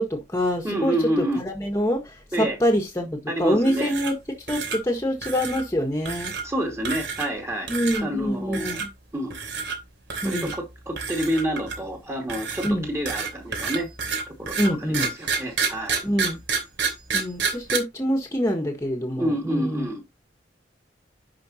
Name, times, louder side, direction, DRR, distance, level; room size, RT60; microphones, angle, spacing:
voice 1, 0.0-4.2 4.5-6.3 7.7-8.9 10.2-10.5 12.6-12.9 14.6-15.1 16.0-16.4 17.1-19.9, equal, 15° left, 1.6 m, -25 dB
voice 2, 0.6-1.4 2.3-2.6 3.3-3.9 6.4-8.8 9.1-9.3 10.2-13.9 14.3-16.0 19.2-20.0, right 1 dB, 15° right, 2.5 m, -28 dB
sound 1, 3.6-4.2 4.5-4.8 5.2-5.6 6.1-6.4 6.8-7.4 7.7-8.0 8.5-8.9 9.3-9.8 10.1-10.6 11.0-11.9 12.3-17.8, right 5 dB, 90° right, 3.1 m, -29 dB
10.5 x 5.1 x 2.9 m
head